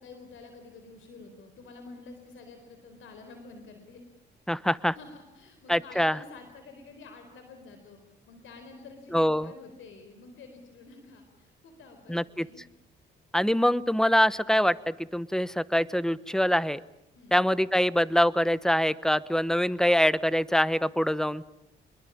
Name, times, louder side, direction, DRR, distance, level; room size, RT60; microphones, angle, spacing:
voice 1, 0.0-4.0 5.0-12.7 17.1-17.5, left 3 dB, 75° left, 6 dB, 4.4 m, -49 dB
voice 2, 4.5-5.0 5.7-6.2 9.1-9.5 12.1-12.5 13.3-16.8 17.3-21.4, equal, 5° left, 17 dB, 1.0 m, -24 dB
27.0 x 22.0 x 8.7 m, 0.84 s
cardioid pair, 90°, 20 cm